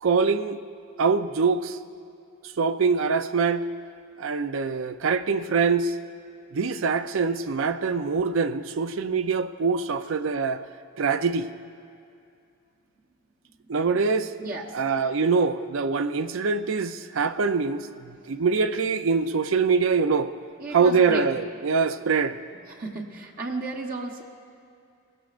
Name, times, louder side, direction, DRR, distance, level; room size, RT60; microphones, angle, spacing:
voice 1, 0.0-0.6 1.0-1.8 2.6-3.7 4.2-5.9 6.5-10.6 11.0-11.5 13.7-14.3 14.7-17.8 18.3-20.3 20.7-22.4, right 5 dB, 65° right, 11 dB, 0.5 m, -24 dB
voice 2, 14.4-14.8 20.6-21.4 22.7-24.2, right 2 dB, 40° right, -1 dB, 1.0 m, -33 dB
19.5 x 16.5 x 2.5 m, 2.5 s
head